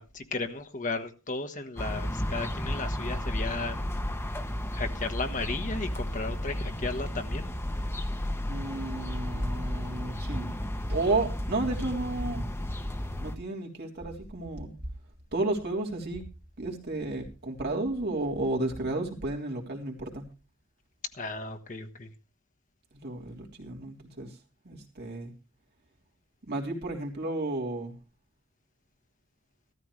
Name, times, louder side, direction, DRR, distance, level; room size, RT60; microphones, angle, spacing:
voice 1, 0.0-3.9 4.7-7.5 21.1-22.1, left 3 dB, 40° left, 6 dB, 1.4 m, -35 dB
sound 1, 1.8-13.3, left 1 dB, 10° left, 0.9 m, -33 dB
voice 2, 8.5-10.5 10.9-12.4 13.2-14.7 15.3-16.2 16.6-20.3 22.9-24.4 24.6-25.3 26.5-27.9, right 2 dB, 50° right, 0 dB, 3.3 m, -32 dB
14.5 x 13.5 x 3.2 m, 0.31 s
head